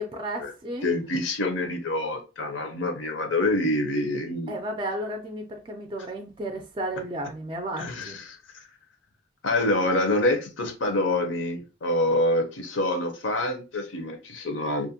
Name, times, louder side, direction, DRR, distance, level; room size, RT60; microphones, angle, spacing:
voice 1, 0.0-0.9 4.5-8.2, right 1 dB, 25° right, 0.3 m, -33 dB
voice 2, 0.8-4.6 7.8-8.4 9.4-14.9, left 1 dB, 80° left, 0.7 m, -26 dB
2.5 x 2.1 x 2.7 m
head